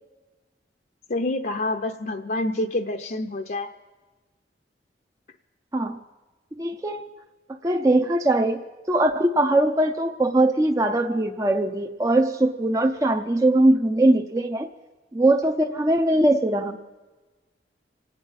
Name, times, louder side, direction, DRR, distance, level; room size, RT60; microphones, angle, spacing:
voice 1, 1.1-3.7, left 2 dB, 50° left, 3 dB, 0.7 m, -27 dB
voice 2, 6.6-7.1 7.6-14.7 15.1-16.8, right 1 dB, 20° right, 3 dB, 0.6 m, -21 dB
26.5 x 9.0 x 5.5 m, 1.3 s
head